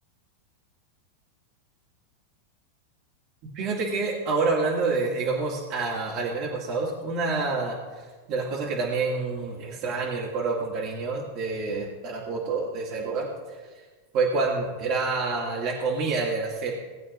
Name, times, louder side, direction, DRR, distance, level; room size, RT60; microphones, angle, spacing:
voice 1, 3.5-7.8 8.3-13.6 14.1-16.7, right 3 dB, 50° right, -5 dB, 2.5 m, -27 dB
19.5 x 8.7 x 2.7 m, 1.4 s
hypercardioid pair, 115°, 0 cm